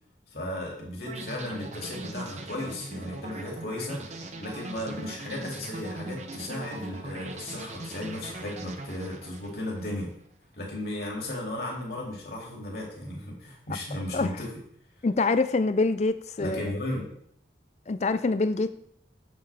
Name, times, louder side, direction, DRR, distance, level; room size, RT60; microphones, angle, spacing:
voice 1, 0.3-10.1 10.6-14.5 16.4-17.1, left 1 dB, 60° left, -2 dB, 2.5 m, -35 dB
sound 1, 1.1-10.1, right 2 dB, 40° right, 0.7 m, -40 dB
voice 2, 15.0-16.6 17.9-18.7, left 3 dB, 40° left, 12 dB, 0.4 m, -25 dB
7.8 x 7.4 x 3.4 m, 0.68 s
head